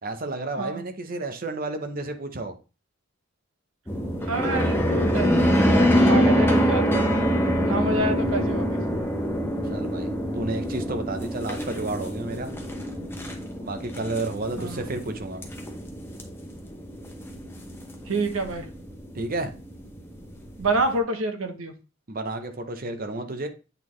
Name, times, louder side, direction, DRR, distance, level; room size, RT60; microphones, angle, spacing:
voice 1, 0.0-2.6 9.6-12.6 13.6-15.4 19.1-19.5 22.1-23.5, right 2 dB, 45° right, 7 dB, 0.7 m, -31 dB
sound 1, 3.9-20.9, equal, 10° left, 0.8 m, -25 dB
voice 2, 4.2-7.3 7.6-8.8 14.6-14.8 18.1-18.6 20.6-21.7, right 2 dB, 80° right, 6 dB, 1.0 m, -28 dB
8.2 x 3.7 x 3.1 m, 0.32 s
head